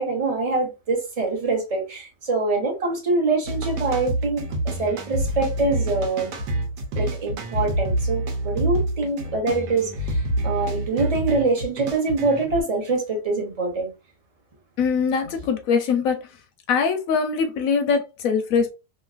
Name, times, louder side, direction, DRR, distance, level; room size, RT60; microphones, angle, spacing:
voice 1, 0.0-4.4 4.8-6.3 6.9-13.9, right 3 dB, 40° right, 0.5 m, -24 dB
sound 1, 3.5-12.6, right 1 dB, 90° right, 1.4 m, -27 dB
voice 2, 14.8-16.2 16.7-18.7, left 5 dB, 70° left, 0.8 m, -22 dB
3.0 x 2.5 x 2.4 m
omnidirectional pair, 1.8 m